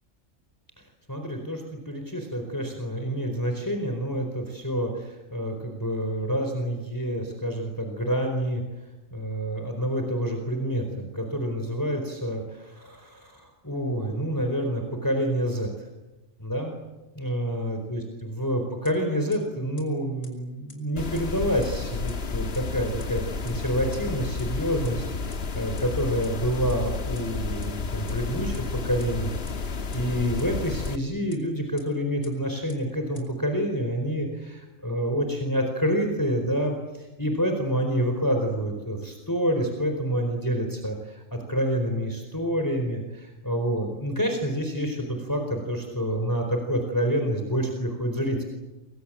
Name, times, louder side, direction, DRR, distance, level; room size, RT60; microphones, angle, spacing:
voice 1, 1.1-8.6 9.1-15.7 16.4-16.7 17.1-48.4, equal, 15° left, 4 dB, 4.4 m, -28 dB
sound 1, 18.8-18.9 19.3-19.4 19.8-19.9 20.2-20.3 20.7-20.8 21.1-21.2 21.6-21.7 22.1-22.2 22.5-22.6 23.0-23.1 23.5-23.6 23.9-24.0 24.4-24.5 24.8-24.9 25.3-25.4 25.8-25.9 26.2-26.3 26.7-26.8 27.1-27.2 27.6-27.7 28.1-28.2 28.5-28.6 29.0-29.1 29.5-29.6 29.9-30.0 30.4-30.5 30.8-30.9 31.3-31.4 31.8-31.9 32.2-32.3 32.7-32.8 33.1-33.2, left 2 dB, 90° left, 6.0 m, -47 dB
sound 2, 21.0-31.0, left 4 dB, 55° left, 1.5 m, -31 dB
28.5 x 25.5 x 7.6 m, 1.0 s
omnidirectional pair, 1.3 m